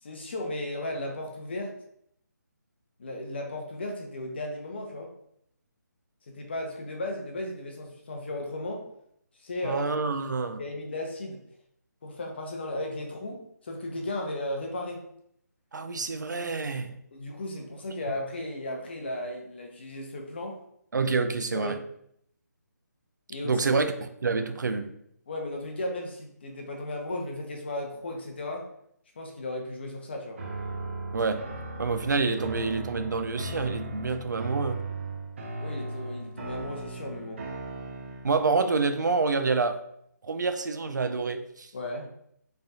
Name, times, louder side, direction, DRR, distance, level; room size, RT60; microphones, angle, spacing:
voice 1, 0.0-1.8 3.0-5.1 6.3-8.9 9.4-9.8 10.6-11.4 12.0-15.0 17.1-20.6 21.5-21.8 23.3-23.6 25.3-28.7 29.2-30.4 35.6-37.5 41.7-42.1, left 1 dB, 35° left, 2 dB, 0.7 m, -35 dB
voice 2, 9.6-10.6 15.7-17.0 20.9-21.8 23.4-24.9 31.1-31.4 31.8-34.8 38.2-39.8 40.2-41.7, right 4 dB, 80° right, 8 dB, 0.5 m, -27 dB
sound 1, 30.4-38.4, right 2 dB, 45° right, 0.8 m, -37 dB
3.3 x 2.3 x 4.1 m, 0.72 s
hypercardioid pair, 170°, 10 cm